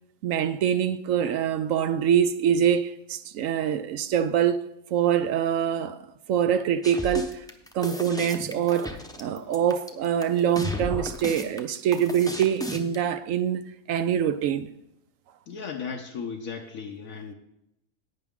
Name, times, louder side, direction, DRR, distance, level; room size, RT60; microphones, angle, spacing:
voice 1, 0.2-4.7 4.9-6.0 6.3-7.4 7.7-14.7, right 9 dB, 70° right, 0.9 m, -24 dB
sound 1, 6.8-13.0, left 1 dB, 5° left, 0.7 m, -34 dB
voice 2, 15.5-17.3, left 6 dB, 70° left, 1.3 m, -36 dB
17.5 x 6.0 x 3.7 m
omnidirectional pair, 1.5 m